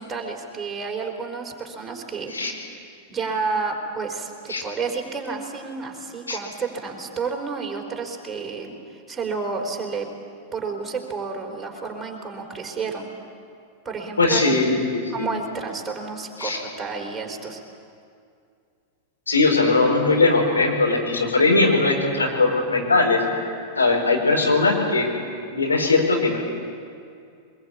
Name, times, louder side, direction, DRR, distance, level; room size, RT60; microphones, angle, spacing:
voice 1, 0.0-2.5 3.1-10.1 10.5-13.1 13.8-14.6 15.1-16.5 16.8-17.6, right 4 dB, 10° right, 1 dB, 4.2 m, -30 dB
voice 2, 14.2-15.3 16.4-16.6 19.3-23.2 23.8-25.1 25.5-26.4, left 3 dB, 75° left, 0 dB, 4.7 m, -20 dB
23.5 x 22.0 x 8.9 m, 2.4 s
figure-of-eight pair, 90°, 0 cm